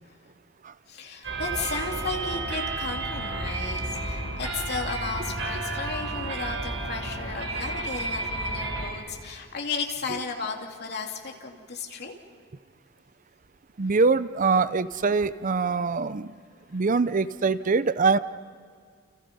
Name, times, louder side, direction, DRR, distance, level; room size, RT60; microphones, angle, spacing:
voice 1, 0.9-12.1, left 4 dB, 55° left, 1 dB, 3.1 m, -34 dB
sound 1, 1.2-8.9, right 2 dB, 65° right, 4.4 m, -31 dB
voice 2, 13.8-16.3 16.7-18.2, right 4 dB, 40° right, 14 dB, 0.6 m, -23 dB
29.5 x 29.0 x 5.5 m, 2.1 s
head